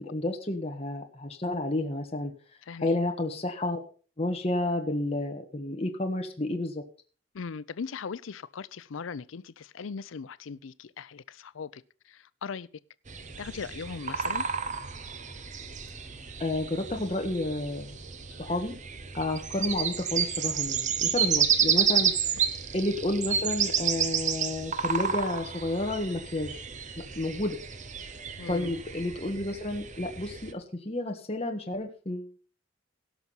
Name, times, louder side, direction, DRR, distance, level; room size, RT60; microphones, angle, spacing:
voice 1, 0.0-2.3 2.8-3.8 4.2-6.8 16.4-18.0 18.4-18.7 19.1-22.1 22.7-26.6 27.1-27.6 28.5-32.4, left 1 dB, 30° left, 1.5 m, -31 dB
voice 2, 2.6-3.0 7.3-12.7 13.4-14.5 28.4-28.7, left 5 dB, 85° left, 0.5 m, -39 dB
sound 1, 13.1-30.5, right 7 dB, 40° right, 0.9 m, -31 dB
17.5 x 6.0 x 5.6 m
head